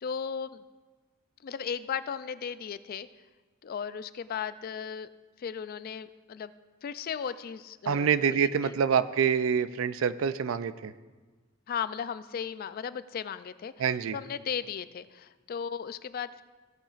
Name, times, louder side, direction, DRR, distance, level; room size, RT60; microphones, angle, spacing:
voice 1, 0.0-0.6 1.4-3.1 3.6-5.1 5.4-6.5 6.8-8.7 11.7-13.7 14.1-16.4, left 7 dB, 45° left, 14 dB, 0.3 m, -36 dB
voice 2, 7.9-10.9 13.8-14.2, right 7 dB, 80° right, 15 dB, 0.4 m, -26 dB
16.0 x 8.7 x 2.5 m, 1.3 s
head